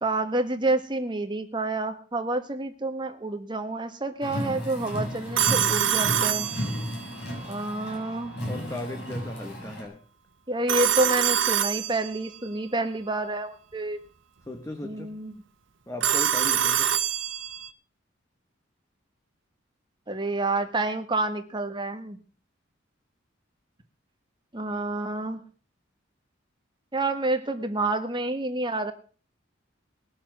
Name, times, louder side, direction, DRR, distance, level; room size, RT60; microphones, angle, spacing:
voice 1, 0.0-6.5 7.5-8.3 10.5-14.0 14.8-15.3 20.1-22.2 24.5-25.4 26.9-28.9, right 2 dB, 25° right, 7 dB, 1.5 m, -28 dB
Car, 4.2-9.9, equal, 55° left, 6.5 m, -34 dB
Telephone, 5.4-7.1 10.7-12.4 16.0-17.7, right 9 dB, 75° right, 1.0 m, -25 dB
voice 2, 8.4-10.0 14.4-15.1 15.9-16.9, left 1 dB, 15° left, 5 dB, 1.3 m, -37 dB
20.0 x 7.3 x 6.2 m, 0.41 s
head